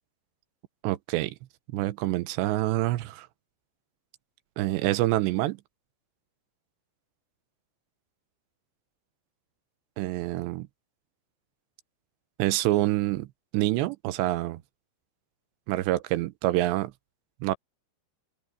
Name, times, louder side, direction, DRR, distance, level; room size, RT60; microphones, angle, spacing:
voice 1, 0.8-1.4 1.7-3.3 4.6-5.6 10.0-10.7 12.4-13.3 13.5-14.6 15.7-16.9 17.4-17.6, right 16 dB, 80° right, 2.9 m, -26 dB
open air
omnidirectional pair, 5.2 m